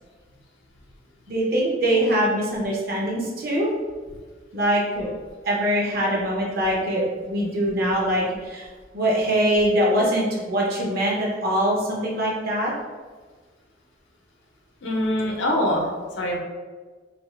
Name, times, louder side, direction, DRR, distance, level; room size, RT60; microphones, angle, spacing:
voice 1, 1.3-3.7 4.5-5.1 5.4-8.7 8.9-12.7, equal, 55° right, -3 dB, 0.7 m, -23 dB
voice 2, 14.8-16.4, left 1 dB, 80° left, -1 dB, 0.6 m, -24 dB
2.6 x 2.3 x 3.2 m, 1.4 s
head